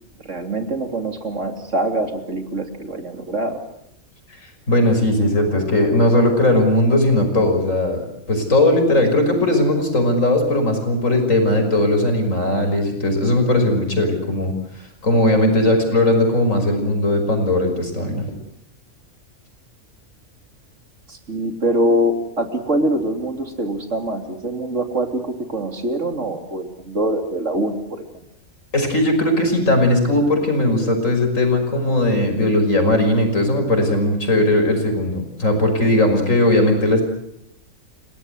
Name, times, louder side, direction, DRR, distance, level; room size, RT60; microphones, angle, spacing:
voice 1, 0.2-3.6 21.1-28.0, right 1 dB, 60° right, 5 dB, 3.5 m, -24 dB
voice 2, 4.7-18.2 28.7-37.0, left 1 dB, 65° left, 5 dB, 6.1 m, -18 dB
29.5 x 18.5 x 8.0 m, 0.76 s
omnidirectional pair, 1.5 m